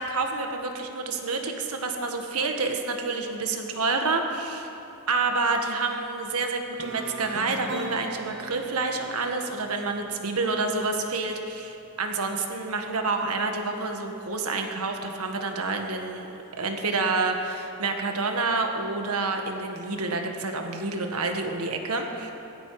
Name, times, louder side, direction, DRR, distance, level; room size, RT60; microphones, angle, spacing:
voice 1, 0.0-4.7 5.1-22.3, right 3 dB, 80° right, 4 dB, 1.6 m, -28 dB
sound 1, 6.8-10.7, right 2 dB, 55° right, 1.2 m, -39 dB
17.5 x 15.5 x 4.9 m, 2.9 s
head